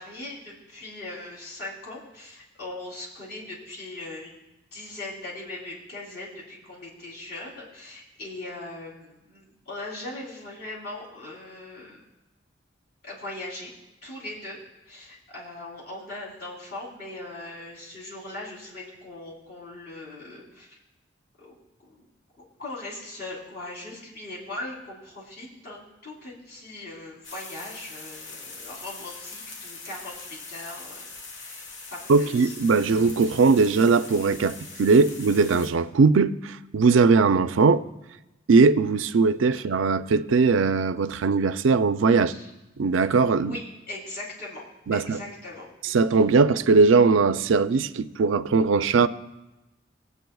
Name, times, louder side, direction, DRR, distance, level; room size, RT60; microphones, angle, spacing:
voice 1, 0.0-4.4 4.7-12.0 13.0-13.7 14.0-14.6 14.9-20.8 21.4-22.0 22.4-32.5 39.5-39.7 42.3-42.5 43.3-44.6 44.9-45.7, left 2 dB, 55° left, 3.4 m, -40 dB
sound 1, 27.2-35.7, left 3 dB, 80° left, 1.3 m, -42 dB
voice 2, 32.1-37.8 38.5-42.3 42.8-43.6 44.9-45.2 45.8-49.1, right 4 dB, 85° right, 0.4 m, -20 dB
20.0 x 8.3 x 2.3 m
head